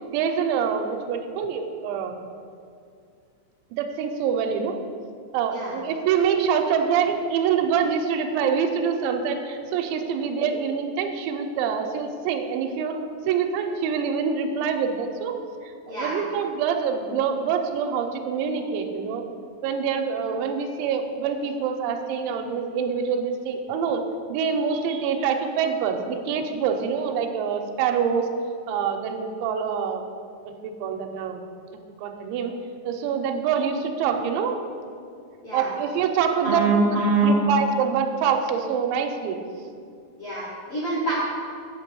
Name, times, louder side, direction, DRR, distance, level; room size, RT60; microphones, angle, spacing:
voice 1, 0.1-2.2 3.8-4.8 5.3-13.0 13.3-15.4 15.6-19.2 19.6-24.0 24.3-28.3 28.7-30.0 30.5-31.4 32.0-32.5 32.9-34.6 35.5-39.4, right 6 dB, 90° right, 4 dB, 2.9 m, -25 dB
voice 2, 15.9-16.2 35.4-35.7 36.4-37.4 40.2-41.1, right 3 dB, 80° left, -8 dB, 1.2 m, -24 dB
8.8 x 5.2 x 7.6 m, 2.3 s
omnidirectional pair, 5.2 m